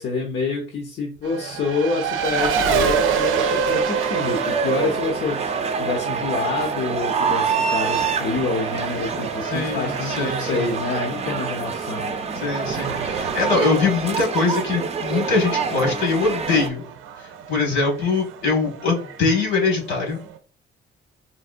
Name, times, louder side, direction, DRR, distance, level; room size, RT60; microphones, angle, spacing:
voice 1, 0.0-12.2, left 4 dB, 60° left, 1 dB, 0.8 m, -27 dB
Race car auto racing, 1.2-20.4, right 6 dB, 85° right, 0.5 m, -29 dB
sound 1, 2.3-16.7, right 5 dB, 35° right, 0.5 m, -27 dB
voice 2, 9.4-10.7 12.3-16.8 17.5-20.2, left 4 dB, 75° left, 0 dB, 1.5 m, -22 dB
4.0 x 2.1 x 2.5 m, 0.39 s
cardioid pair, 90°, 20 cm